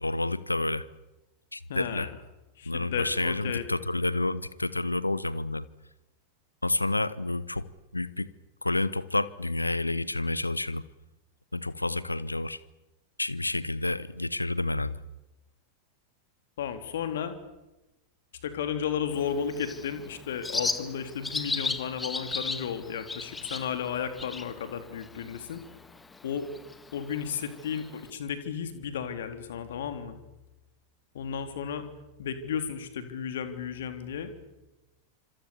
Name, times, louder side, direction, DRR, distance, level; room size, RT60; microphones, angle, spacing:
voice 1, 0.0-0.9 1.5-2.1 2.7-5.6 6.6-7.7 7.9-8.3 8.6-10.8 11.5-12.6 13.2-15.0, left 2 dB, 85° left, 1.1 m, -29 dB
voice 2, 1.7-2.1 2.6-3.7 16.6-17.4 18.4-25.6 26.2-26.5 26.9-30.2 31.1-31.8 32.2-34.3, left 7 dB, 60° left, 3.3 m, -33 dB
Bird, 19.1-28.1, left 3 dB, 10° left, 1.8 m, -37 dB
26.5 x 26.5 x 7.1 m
figure-of-eight pair, 90°, 0 cm